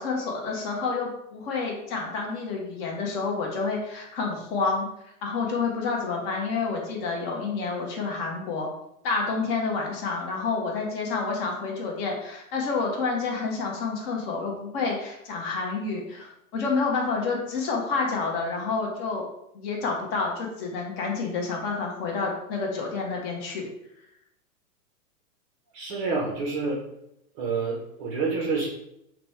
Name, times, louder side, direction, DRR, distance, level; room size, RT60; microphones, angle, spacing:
voice 1, 0.0-8.7 9.0-19.2 19.5-23.7, left 4 dB, 40° left, 0 dB, 1.1 m, -29 dB
voice 2, 25.7-26.8 27.3-28.7, right 4 dB, 25° right, -2 dB, 0.6 m, -28 dB
4.1 x 2.2 x 4.2 m, 0.79 s
hypercardioid pair, 145°, 46 cm